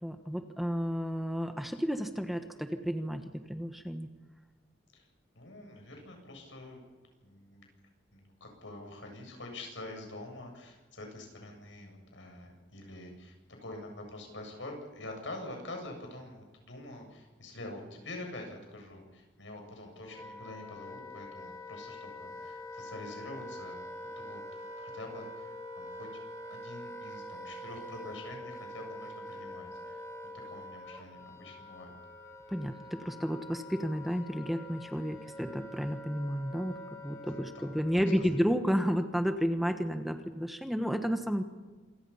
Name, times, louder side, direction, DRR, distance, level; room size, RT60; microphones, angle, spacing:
voice 1, 0.0-4.1 32.5-41.4, equal, ahead, 6 dB, 1.3 m, -32 dB
voice 2, 5.4-6.8 7.2-7.7 8.1-13.4 13.6-23.8 24.2-24.4 24.8-26.1 26.5-30.0 30.3-31.9 37.3-37.7, left 2 dB, 80° left, 2 dB, 7.6 m, -46 dB
Wind instrument woodwind instrument, 19.6-38.4, left 1 dB, 20° left, 3.1 m, -45 dB
27.0 x 24.0 x 5.7 m, 1.3 s
head